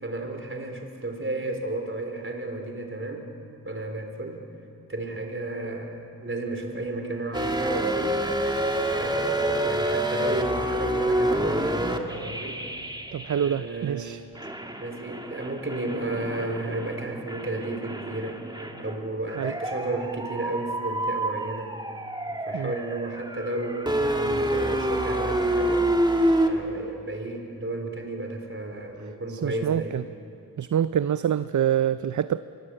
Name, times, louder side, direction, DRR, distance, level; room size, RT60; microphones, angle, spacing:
voice 1, 0.0-3.3 3.6-4.4 4.9-8.2 8.9-12.6 13.3-14.2 14.8-18.4 18.8-21.8 22.3-25.9 26.4-30.0, right 2 dB, 35° right, 4 dB, 3.9 m, -33 dB
sound 1, 7.3-13.9 14.4-26.5, right 1 dB, 10° right, 1.9 m, -28 dB
voice 2, 13.1-14.2 19.4-19.5 22.5-22.7 29.4-30.0 30.6-32.4, right 9 dB, 50° right, 14 dB, 0.5 m, -26 dB
24.5 x 20.5 x 7.7 m, 2.6 s
cardioid pair, 60°, 37 cm